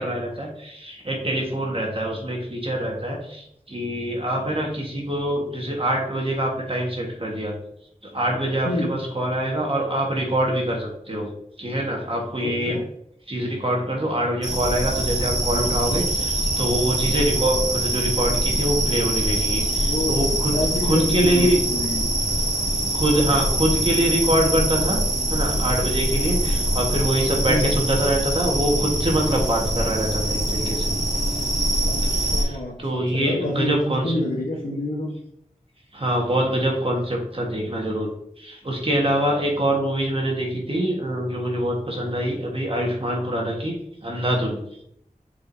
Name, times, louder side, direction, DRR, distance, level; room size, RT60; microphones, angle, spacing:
voice 1, 0.0-7.6 8.0-11.3 11.6-12.8 13.3-20.5 20.8-21.6 22.9-25.0 25.3-30.9 31.6-34.2 35.9-38.1 38.4-43.8 44.0-44.6, right 1 dB, 40° right, -1 dB, 1.6 m, -24 dB
voice 2, 12.4-12.8 19.8-20.2 20.5-22.1 27.5-27.6 31.8-32.7 33.1-35.1, left 1 dB, 80° left, -4 dB, 1.3 m, -27 dB
sound 1, 14.4-32.4, right 1 dB, 55° right, 2.2 m, -24 dB
7.4 x 4.6 x 2.8 m, 0.73 s
wide cardioid pair, 45°, 14 cm